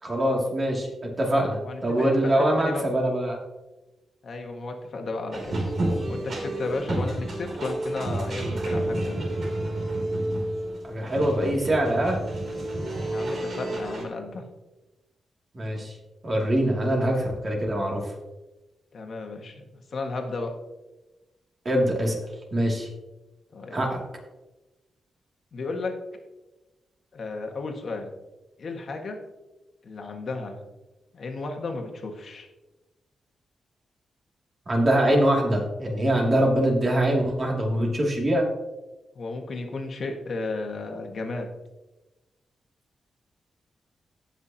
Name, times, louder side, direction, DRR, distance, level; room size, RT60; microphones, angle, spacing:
voice 1, 0.0-3.4 10.8-12.2 15.5-15.9 16.2-18.1 21.6-22.2 22.5-22.9 23.7-24.0 34.7-38.5, right 1 dB, 35° right, -1 dB, 2.5 m, -23 dB
voice 2, 1.6-2.8 4.2-5.6 6.0-9.2 13.1-14.4 16.9-17.0 18.9-20.5 23.5-24.0 25.5-25.9 27.1-28.1 28.6-29.2 29.8-30.6 31.1-32.5 39.1-41.5, left 3 dB, 55° left, 3 dB, 1.6 m, -33 dB
sound 1, 5.3-14.0, right 1 dB, 55° right, 3.0 m, -30 dB
17.5 x 6.1 x 2.9 m, 1.1 s
wide cardioid pair, 110°, 0 cm